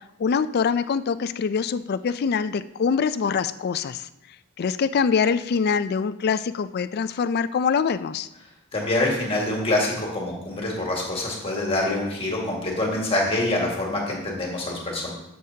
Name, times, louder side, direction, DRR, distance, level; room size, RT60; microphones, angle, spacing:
voice 1, 0.2-4.1 4.6-8.3, left 6 dB, 45° left, 13 dB, 0.3 m, -24 dB
voice 2, 8.7-15.1, left 2 dB, 25° left, -2 dB, 1.8 m, -25 dB
12.0 x 6.6 x 2.8 m, 0.89 s
head